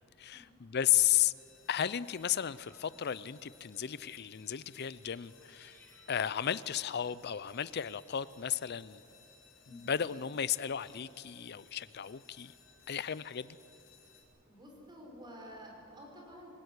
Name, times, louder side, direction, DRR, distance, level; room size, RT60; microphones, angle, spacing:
voice 1, 0.2-1.3 1.7-5.7 6.1-9.0 9.9-12.5 12.9-13.6, left 10 dB, 50° left, 18 dB, 0.5 m, -33 dB
sound 1, 1.4-14.2, left 6 dB, 65° left, 6.2 m, -62 dB
sound 2, 2.0-3.2 3.6-3.9 5.0-6.9, left 1 dB, 10° left, 3.2 m, -65 dB
voice 2, 14.5-16.5, equal, 20° right, 0 dB, 5.6 m, -50 dB
28.0 x 17.5 x 8.2 m, 2.8 s
head